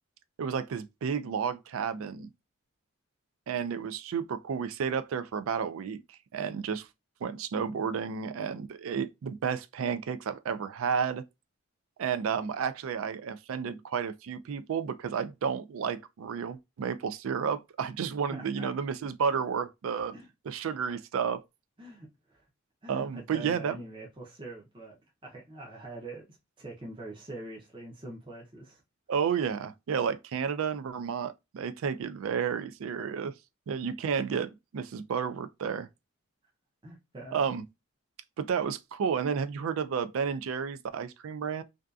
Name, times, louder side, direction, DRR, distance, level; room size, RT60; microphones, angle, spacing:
voice 1, 0.4-2.3 3.5-6.9 7.2-11.2 12.0-20.1 20.5-21.4 22.9-23.7 29.1-33.3 33.7-35.9 37.3-37.6 38.4-41.6, right 6 dB, 75° right, 0.3 m, -31 dB
voice 2, 18.3-18.7 20.1-20.3 21.8-22.4 22.8-25.0 25.2-26.3 26.6-28.8 36.8-37.4, right 2 dB, 25° right, 0.5 m, -44 dB
2.6 x 2.3 x 2.3 m
head